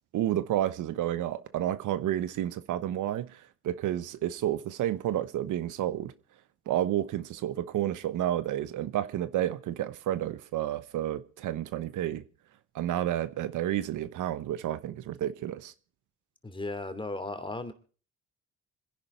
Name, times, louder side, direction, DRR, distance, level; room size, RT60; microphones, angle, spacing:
voice 1, 0.1-6.1 6.7-12.2 12.7-15.7, right 12 dB, 80° right, 1.1 m, -30 dB
voice 2, 16.4-17.7, left 2 dB, 15° left, 2.9 m, -35 dB
26.0 x 10.5 x 4.5 m
cardioid pair, 90°, 30 cm